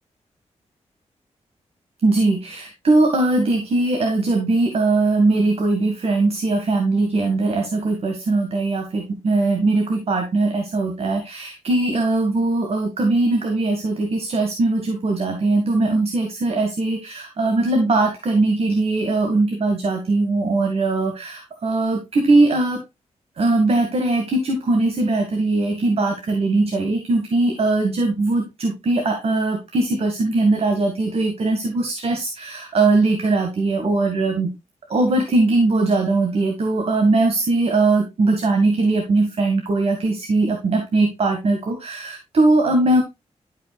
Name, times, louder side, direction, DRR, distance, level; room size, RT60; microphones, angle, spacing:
voice 1, 2.0-22.8 23.4-34.5 34.9-43.0, right 2 dB, 55° right, 3 dB, 1.8 m, -20 dB
12.5 x 5.5 x 2.4 m, 0.23 s
wide cardioid pair, 120°, 12 cm